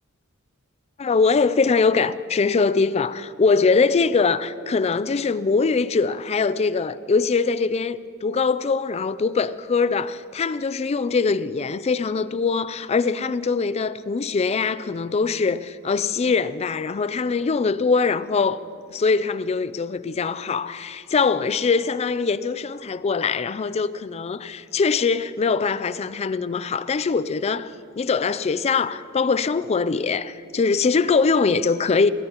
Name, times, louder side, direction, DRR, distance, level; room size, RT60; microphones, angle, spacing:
voice 1, 1.0-18.6 18.9-32.1, left 4 dB, 30° left, 0.4 m, -22 dB
22.0 x 16.0 x 3.0 m
head